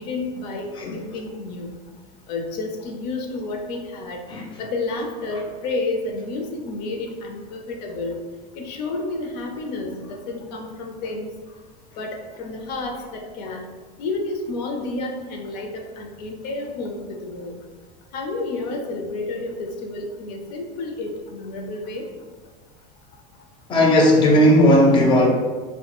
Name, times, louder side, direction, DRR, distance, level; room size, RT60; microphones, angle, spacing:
voice 1, 0.0-1.8 2.3-4.2 4.6-8.2 8.5-11.3 12.0-13.6 14.0-17.5 18.1-22.1, left 2 dB, 75° left, 2 dB, 0.5 m, -30 dB
voice 2, 23.7-25.3, equal, 25° left, -1 dB, 0.4 m, -15 dB
2.2 x 2.1 x 2.9 m, 1.4 s
supercardioid pair, 135°, 21 cm